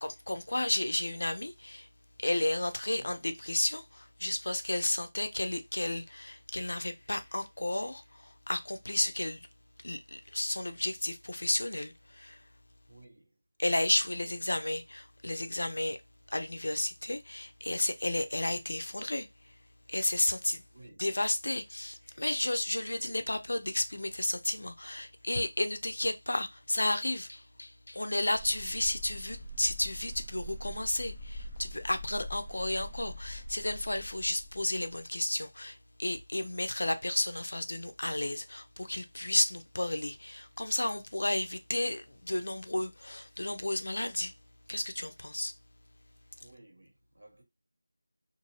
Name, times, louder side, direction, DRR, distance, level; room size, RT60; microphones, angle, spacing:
voice 1, 0.0-1.9 2.2-9.5 9.8-12.4 13.6-16.0 16.3-19.5 19.9-20.6 21.0-44.3 44.7-45.5, left 1 dB, 80° left, 0.6 m, -32 dB
voice 2, 12.9-13.4 20.7-21.0 46.4-47.4, right 2 dB, 70° right, 1.4 m, -55 dB
sound 1, 28.3-35.0, equal, 20° left, 0.6 m, -43 dB
2.6 x 2.6 x 3.1 m
figure-of-eight pair, 175°, 0 cm